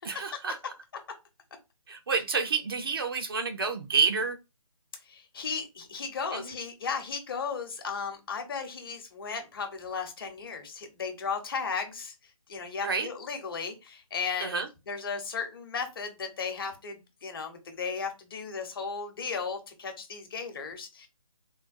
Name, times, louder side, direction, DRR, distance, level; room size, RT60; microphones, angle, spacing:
voice 1, 0.0-0.6 1.9-4.4 6.3-6.4 12.8-13.1 14.4-14.7, right 5 dB, 40° right, 6 dB, 0.5 m, -29 dB
voice 2, 5.0-21.1, left 5 dB, 40° left, 5 dB, 0.9 m, -35 dB
3.7 x 2.2 x 2.5 m, 0.25 s
hypercardioid pair, 160°, 18 cm